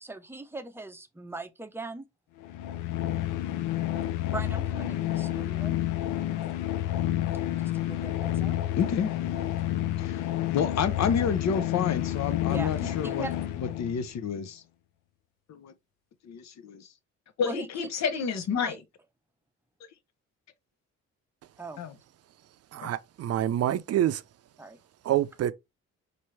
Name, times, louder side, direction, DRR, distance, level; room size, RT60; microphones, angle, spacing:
voice 1, 0.0-2.1 4.3-5.8 7.7-8.6 12.5-13.4 17.4-18.8 21.6-21.8 22.8-22.9 24.6-24.8, right 2 dB, 10° right, 0.6 m, -39 dB
sound 1, 2.4-14.1, left 13 dB, 90° left, 0.5 m, -30 dB
voice 2, 8.8-9.5 10.0-10.3 10.5-13.3 13.6-14.6 15.5-15.7 16.2-16.9 17.4-18.8 21.8-21.9 22.8-22.9, left 7 dB, 65° left, 0.8 m, -30 dB
voice 3, 22.7-24.2 25.1-25.5, right 12 dB, 55° right, 0.5 m, -27 dB
4.4 x 2.6 x 3.2 m
cardioid pair, 90°, 30 cm